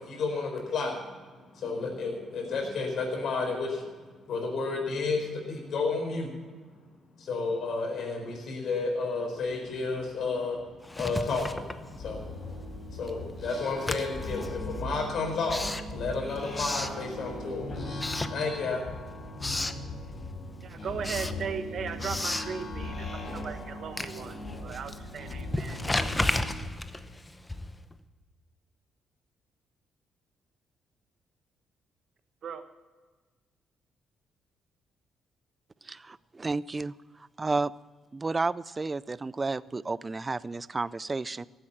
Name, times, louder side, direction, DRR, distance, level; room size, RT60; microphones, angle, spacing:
voice 1, 0.0-3.9 4.3-6.3 7.2-10.6 11.0-12.4 12.9-17.7 18.3-18.8, left 4 dB, 65° left, 1 dB, 4.9 m, -31 dB
sound 1, 9.5-9.6 10.0-26.5, left 1 dB, 45° left, 4.3 m, -39 dB
Writing, 10.8-12.4 12.7-17.5 17.9-18.9 19.2-19.9 20.3-27.9, left 2 dB, 15° left, 0.8 m, -35 dB
voice 2, 20.6-24.4 24.6-25.8 32.4-32.6, right 6 dB, 60° right, 9 dB, 1.2 m, -37 dB
voice 3, 35.8-36.9 37.4-37.7 38.1-41.5, right 3 dB, 25° right, 20 dB, 0.4 m, -31 dB
15.5 x 8.9 x 7.3 m, 1.4 s
cardioid pair, 90°, 0 cm